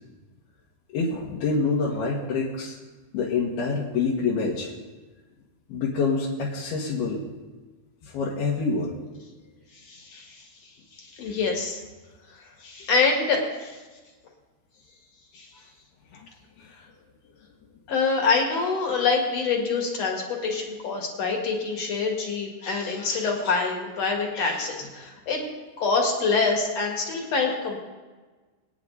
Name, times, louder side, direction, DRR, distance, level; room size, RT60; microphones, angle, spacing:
voice 1, 0.9-2.8 3.1-4.7 5.7-7.2 8.0-9.0 16.1-16.3 16.6-16.7, left 4 dB, 70° left, -5 dB, 3.5 m, -26 dB
voice 2, 9.7-10.5 11.0-11.8 12.6-13.7 15.3-15.5 17.9-25.4 25.8-27.8, left 4 dB, 45° left, 1 dB, 2.5 m, -26 dB
25.0 x 9.5 x 4.0 m, 1.3 s
omnidirectional pair, 4.8 m